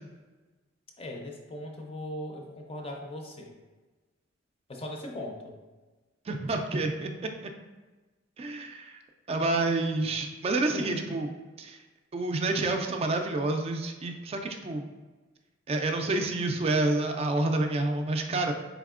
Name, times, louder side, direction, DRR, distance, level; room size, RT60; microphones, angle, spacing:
voice 1, 1.0-3.5 4.7-5.5 10.7-11.0, left 1 dB, 30° left, 1 dB, 0.5 m, -39 dB
voice 2, 6.3-7.3 8.4-9.0 9.3-11.3 11.6-11.8 12.1-14.9 15.7-18.5, right 2 dB, 30° right, 5 dB, 0.3 m, -28 dB
4.0 x 3.5 x 2.4 m, 1.2 s
head